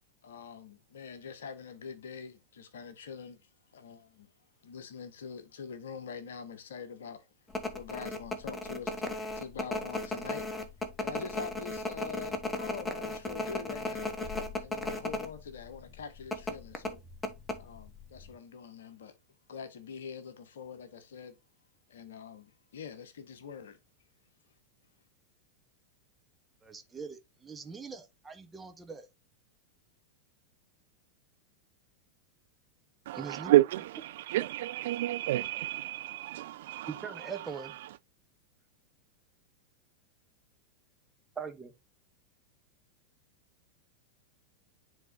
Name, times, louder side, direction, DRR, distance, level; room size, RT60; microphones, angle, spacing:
voice 1, 0.2-4.3 4.6-7.3 7.7-10.5 11.0-17.0 17.6-19.2 19.5-21.4 21.9-23.8, left 6 dB, 60° left, 1.0 m, -45 dB
sound 1, 7.5-15.3 15.6-15.7 16.3-18.0 18.3-18.4, left 2 dB, 10° left, 1.0 m, -35 dB
voice 2, 26.6-29.1 33.1-33.5 36.9-37.7 41.4-41.7, right 5 dB, 15° right, 1.0 m, -42 dB
voice 3, 33.1-36.9, right 15 dB, 55° right, 0.3 m, -29 dB
10.5 x 3.6 x 2.6 m
figure-of-eight pair, 90°, 0 cm